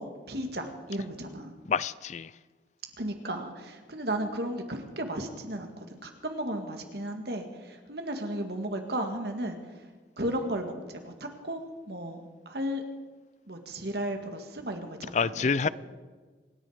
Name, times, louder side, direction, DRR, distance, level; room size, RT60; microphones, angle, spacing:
voice 1, 0.0-1.6 3.0-9.9 10.2-12.8 13.5-15.7, right 1 dB, 60° right, 5 dB, 2.0 m, -35 dB
voice 2, 1.7-2.3 15.1-15.7, left 5 dB, 40° left, 19 dB, 0.4 m, -27 dB
26.0 x 10.5 x 5.1 m, 1.4 s
head